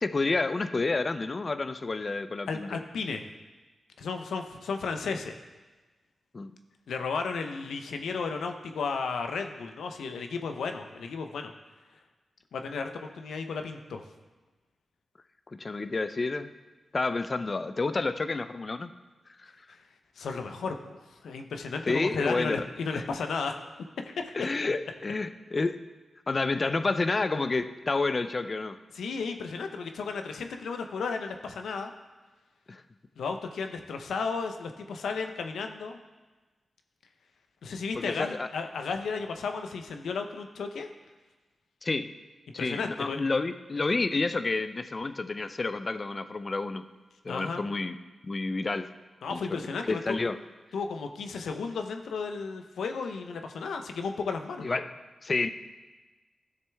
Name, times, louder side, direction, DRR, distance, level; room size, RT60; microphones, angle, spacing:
voice 1, 0.0-2.8 6.3-6.5 15.5-16.5 16.9-18.9 19.4-19.5 21.9-22.6 22.9-23.0 24.3-25.8 26.3-28.8 32.7-32.8 37.9-38.5 41.8-42.1 42.5-46.8 47.2-48.0 48.2-48.9 49.3-50.4 54.6-54.9 55.2-55.5, left 3 dB, 45° left, 11 dB, 0.5 m, -29 dB
voice 2, 2.5-3.3 4.0-5.3 6.9-11.5 12.5-14.0 20.2-21.0 21.2-23.6 24.1-24.3 28.9-31.9 33.2-36.0 37.6-40.9 42.6-43.2 47.3-47.6 49.2-50.2 50.7-54.8, left 4 dB, 85° left, 6 dB, 0.7 m, -34 dB
12.5 x 6.7 x 3.4 m, 1.2 s
cardioid pair, 45°, 0 cm